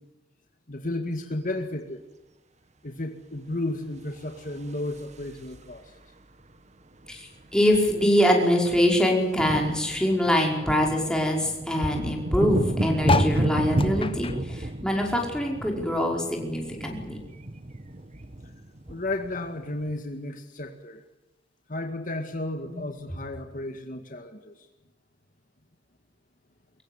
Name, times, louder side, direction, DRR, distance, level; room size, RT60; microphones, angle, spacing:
voice 1, 0.7-2.0 2.8-5.9 18.9-21.0 21.7-24.7, left 2 dB, 50° left, 5 dB, 2.0 m, -33 dB
sound 1, 4.2-5.7 7.0-7.1 7.3-7.6 7.8-19.9, right 1 dB, 40° right, 1.5 m, -31 dB
voice 2, 7.1-17.2 22.6-22.8, equal, 5° left, 0 dB, 5.3 m, -24 dB
sound 2, 13.0-15.8 16.1-17.6 18.1-18.2 18.4-18.5 18.7-19.1 19.9-20.0, left 4 dB, 30° left, 1.1 m, -31 dB
24.0 x 22.5 x 8.2 m, 1.1 s
head